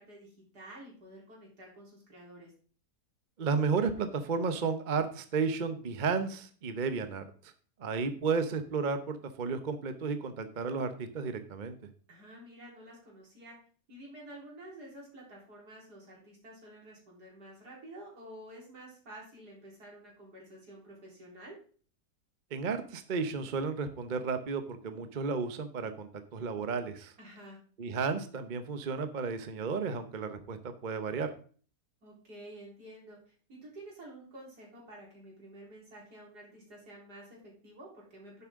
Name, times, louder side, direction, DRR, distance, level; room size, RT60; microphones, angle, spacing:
voice 1, 0.0-2.5 12.1-13.6 13.9-21.6 27.2-27.6 32.0-38.4, right 1 dB, 75° right, -3 dB, 4.4 m, -50 dB
voice 2, 3.4-7.5 7.8-11.8 22.5-27.1 27.8-31.3, right 5 dB, 35° right, 9 dB, 0.8 m, -33 dB
10.5 x 7.5 x 3.7 m, 0.43 s
omnidirectional pair, 1.7 m